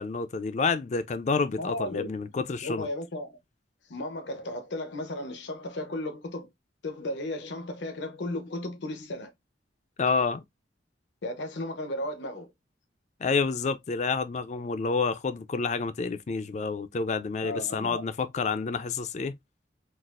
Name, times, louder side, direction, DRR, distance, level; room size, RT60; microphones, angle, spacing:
voice 1, 0.0-2.9 10.0-10.4 13.2-19.3, left 4 dB, 40° left, 0.4 m, -29 dB
voice 2, 1.6-2.1 2.6-3.4 3.9-6.5 6.8-9.3 11.2-12.5 17.4-18.0, left 1 dB, 80° left, 0.8 m, -34 dB
4.0 x 2.4 x 2.4 m
head